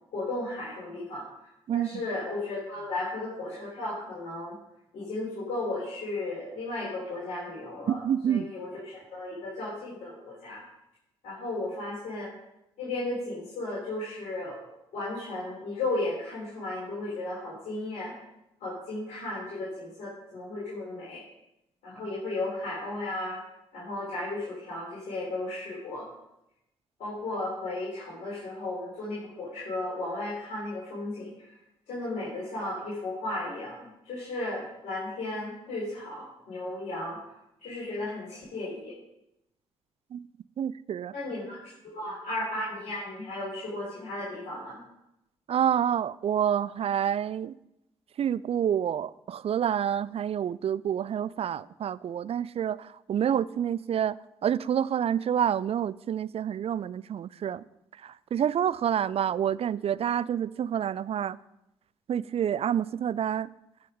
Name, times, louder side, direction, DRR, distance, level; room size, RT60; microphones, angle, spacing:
voice 1, 0.1-1.3 1.7-4.5 4.9-8.0 8.3-10.6 11.2-12.3 12.8-14.6 14.9-18.1 18.6-21.2 21.8-23.4 23.7-26.1 27.0-31.5 31.9-37.2 37.6-38.9 41.1-44.8, left 2 dB, 60° left, 3.9 m, -35 dB
voice 2, 7.9-8.5 40.1-40.2 40.6-41.1 45.5-47.6 48.2-54.2 54.4-57.6 58.0-61.4 62.1-63.5, right 9 dB, 45° right, 0.4 m, -28 dB
16.5 x 5.6 x 5.1 m
hypercardioid pair, 40°, 14 cm